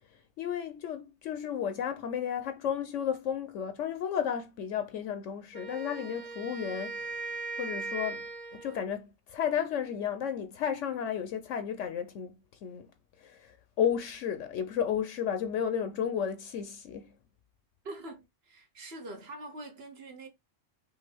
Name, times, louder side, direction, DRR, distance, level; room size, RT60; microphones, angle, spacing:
voice 1, 0.4-7.2 7.6-8.2 8.5-12.3 12.6-12.9 13.2-17.1, left 8 dB, 75° left, 0.9 m, -33 dB
Wind instrument woodwind instrument, 5.5-8.9, right 3 dB, 40° right, 0.5 m, -39 dB
voice 2, 17.8-20.3, right 2 dB, 55° right, 1.3 m, -44 dB
5.5 x 2.6 x 3.3 m
omnidirectional pair, 1.3 m